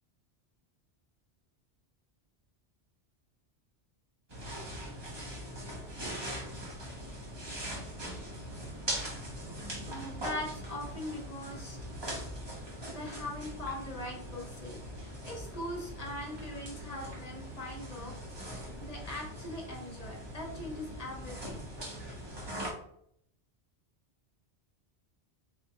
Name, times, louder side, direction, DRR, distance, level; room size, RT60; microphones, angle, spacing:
sound 1, 4.3-22.7, equal, 25° right, 0.7 m, -41 dB
voice 1, 9.8-12.0 12.9-18.1 18.4-21.6, left 1 dB, 40° left, -1 dB, 0.9 m, -41 dB
3.6 x 3.2 x 2.9 m, 0.69 s
omnidirectional pair, 1.1 m